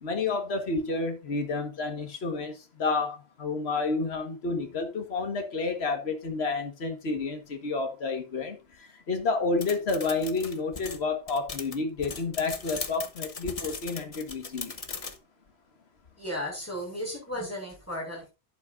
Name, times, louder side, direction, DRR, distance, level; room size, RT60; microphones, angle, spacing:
voice 1, 0.0-14.7, left 3 dB, 80° left, 1.7 m, -30 dB
sound 1, 9.6-15.2, left 4 dB, 35° left, 1.0 m, -38 dB
voice 2, 16.2-18.3, equal, 15° left, 5.7 m, -35 dB
11.5 x 8.6 x 2.5 m
omnidirectional pair, 1.1 m